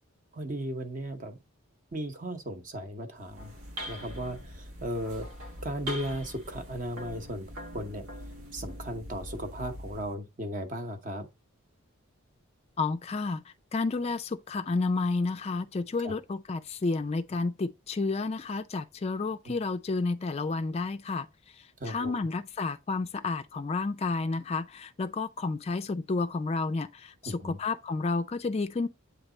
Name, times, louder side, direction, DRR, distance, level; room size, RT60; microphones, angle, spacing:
voice 1, 0.3-1.4 1.9-3.5 3.9-5.3 5.6-7.5 7.7-8.0 8.5-11.3 16.0-16.1 19.5-19.6 21.8-22.3 27.2-27.6, equal, 40° right, 0.9 m, -36 dB
sound 1, 3.2-10.1, equal, 80° right, 1.3 m, -42 dB
voice 2, 12.8-13.4 13.7-21.3 21.8-28.9, left 3 dB, 30° left, 0.3 m, -31 dB
8.0 x 3.3 x 3.8 m
head